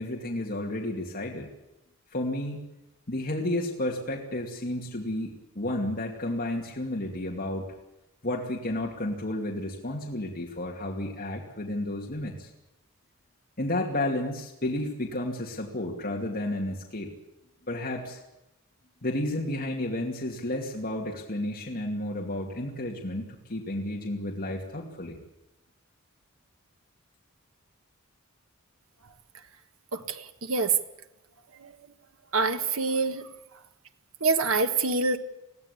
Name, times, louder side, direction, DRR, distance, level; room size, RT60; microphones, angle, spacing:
voice 1, 0.0-1.5 2.1-2.6 3.1-7.7 8.2-12.5 13.6-17.1 17.7-18.2 19.0-25.2, left 1 dB, 45° left, -1 dB, 2.5 m, -32 dB
voice 2, 29.9-30.7 31.6-31.7 32.3-33.3 34.2-35.2, right 4 dB, 70° right, 8 dB, 1.5 m, -26 dB
22.0 x 15.5 x 8.5 m, 0.92 s
head